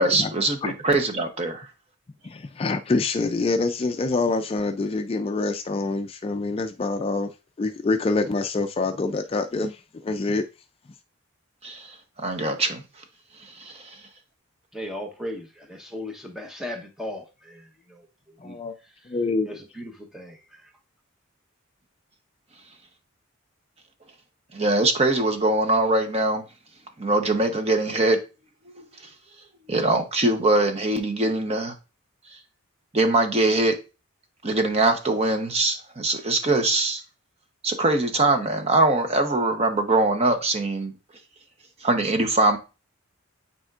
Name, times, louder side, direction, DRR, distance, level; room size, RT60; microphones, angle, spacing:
voice 1, 0.0-1.6 11.6-11.8 12.2-12.8 13.6-13.7 24.5-26.4 27.0-28.2 29.7-31.7 32.9-33.7 34.4-37.0 37.6-40.9 41.8-42.6, right 2 dB, 30° right, 0.9 m, -22 dB
voice 2, 2.2-7.3 7.6-10.4 18.4-18.8 19.1-19.5, left 3 dB, 25° left, 0.3 m, -26 dB
voice 3, 14.7-18.0 18.4-18.6 19.5-20.4, left 1 dB, ahead, 0.9 m, -36 dB
9.0 x 4.2 x 2.4 m
head